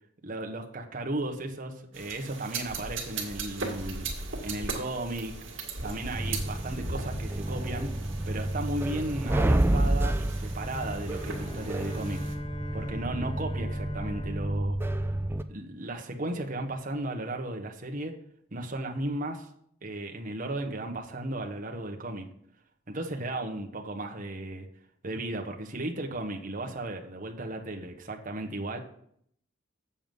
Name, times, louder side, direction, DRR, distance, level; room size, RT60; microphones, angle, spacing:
voice 1, 0.2-4.1 4.4-5.3 5.8-7.9 8.3-12.2 12.7-15.1 15.5-18.1 18.5-19.5 19.8-22.3 22.9-24.7 25.0-28.8, right 1 dB, 45° right, 2 dB, 1.2 m, -35 dB
sound 1, 1.9-12.3, right 3 dB, 70° right, 1.9 m, -39 dB
sound 2, 6.1-15.4, right 1 dB, 10° right, 0.4 m, -30 dB
Bowed string instrument, 10.5-15.9, left 1 dB, 25° left, 0.8 m, -40 dB
7.7 x 7.2 x 5.3 m, 0.66 s
head